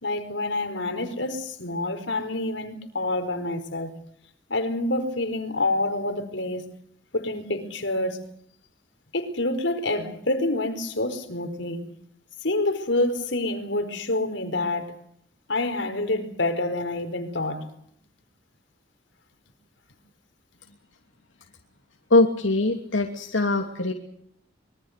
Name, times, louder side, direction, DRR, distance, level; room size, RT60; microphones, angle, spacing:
voice 1, 0.0-3.9 4.5-6.6 7.1-8.2 9.1-11.9 12.4-15.0 15.5-17.7, left 2 dB, 70° left, 4.5 m, -27 dB
voice 2, 22.1-23.9, left 2 dB, 90° left, 2.8 m, -22 dB
25.5 x 23.5 x 6.7 m
head